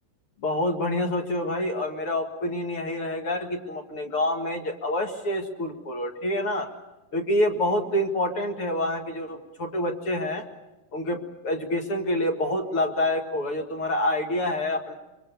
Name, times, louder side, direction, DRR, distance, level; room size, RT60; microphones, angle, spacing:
voice 1, 0.4-6.7 7.1-10.4 10.9-14.9, left 1 dB, 45° left, 3 dB, 2.4 m, -27 dB
25.0 x 25.0 x 7.0 m, 1.0 s
omnidirectional pair, 4.3 m